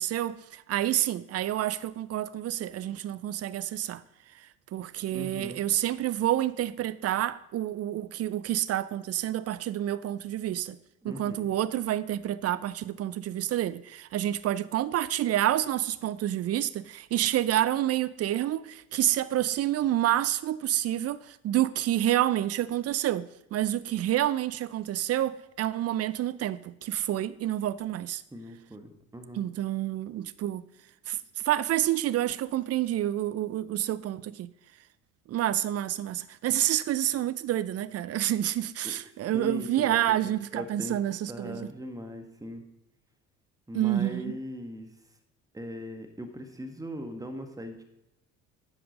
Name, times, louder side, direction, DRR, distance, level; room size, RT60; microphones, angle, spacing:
voice 1, 0.0-4.0 4.3-4.5 4.7-10.8 11.0-28.2 29.3-30.6 31.1-34.5 35.3-41.7 43.7-44.3, right 12 dB, 35° right, 0.6 m, -28 dB
voice 2, 5.1-5.6 11.0-11.5 28.3-29.5 38.8-38.9 39.3-41.0 41.3-42.6 43.7-44.9 45.5-47.8, equal, 10° right, 1.6 m, -39 dB
10.0 x 6.0 x 5.2 m
figure-of-eight pair, 55°, 41 cm